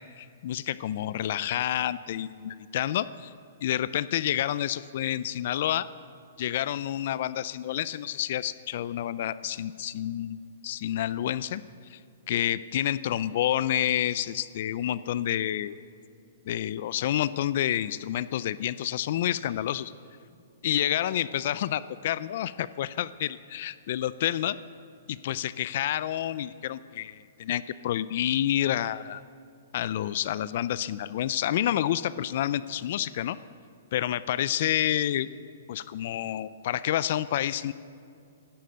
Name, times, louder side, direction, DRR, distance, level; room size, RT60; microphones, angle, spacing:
voice 1, 0.0-3.3 3.6-5.9 6.4-11.6 11.9-12.0 12.3-15.8 16.5-19.9 20.6-24.6 25.1-29.2 29.7-33.4 33.9-35.3 35.7-37.7, left 12 dB, 55° left, 17 dB, 0.4 m, -29 dB
16.0 x 11.5 x 6.4 m, 2.5 s
hypercardioid pair, 145°, 0 cm